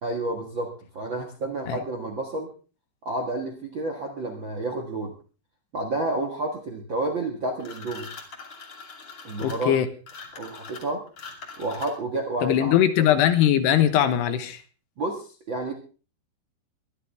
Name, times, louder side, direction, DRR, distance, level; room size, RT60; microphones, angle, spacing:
voice 1, 0.0-2.5 3.0-5.1 5.7-8.1 9.2-9.8 10.4-11.0 11.6-12.7 15.0-15.7, right 2 dB, 75° right, 1 dB, 1.0 m, -30 dB
sound 1, 7.6-12.2, left 4 dB, 35° left, 2.7 m, -42 dB
voice 2, 9.4-9.9 12.4-14.6, left 11 dB, 75° left, 9 dB, 3.0 m, -21 dB
23.0 x 12.5 x 3.5 m, 0.37 s
omnidirectional pair, 5.2 m